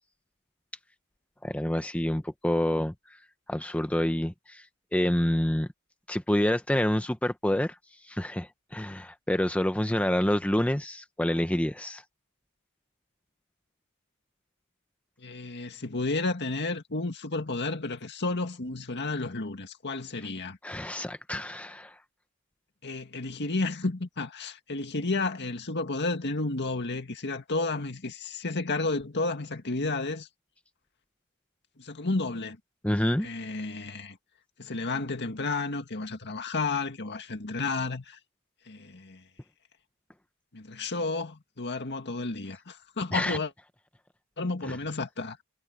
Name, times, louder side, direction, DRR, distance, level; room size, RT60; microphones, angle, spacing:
voice 1, 1.4-3.2 3.5-4.7 4.9-5.7 6.1-7.7 8.0-12.0 20.6-21.9 32.8-33.3 43.1-43.4 44.6-44.8, left 1 dB, 5° left, 0.7 m, -27 dB
voice 2, 15.2-20.6 22.8-30.3 31.8-32.6 33.2-34.2 34.6-38.2 38.7-39.2 40.5-43.5 44.4-45.4, left 3 dB, 50° left, 2.0 m, -32 dB
head